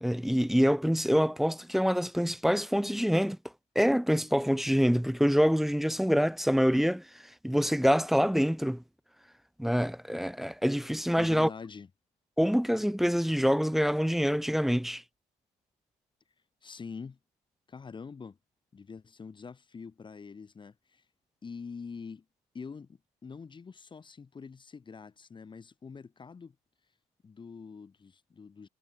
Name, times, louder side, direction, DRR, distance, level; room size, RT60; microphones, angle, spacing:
voice 1, 0.0-3.4 3.8-7.0 7.4-8.8 9.6-11.5 12.4-15.0, equal, ahead, 0.4 m, -26 dB
voice 2, 11.2-11.9 16.6-17.2 17.7-18.4 18.7-21.1 21.4-22.3 22.5-26.6 27.2-28.7, left 5 dB, 30° left, 1.9 m, -45 dB
cardioid pair, 110°, 17 cm